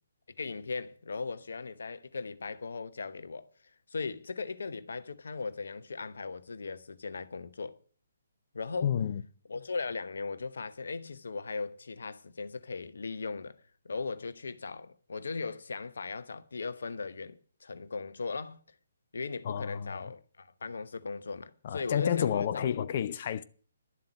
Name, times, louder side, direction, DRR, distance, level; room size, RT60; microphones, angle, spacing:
voice 1, 0.4-3.5 3.9-7.8 8.5-8.9 9.5-13.6 13.8-18.6 19.1-22.7, left 4 dB, 60° left, 1.0 m, -38 dB
voice 2, 8.8-9.2 19.4-20.0 21.6-23.4, left 9 dB, 40° left, 0.6 m, -30 dB
11.5 x 7.7 x 8.7 m
figure-of-eight pair, 135°, 0 cm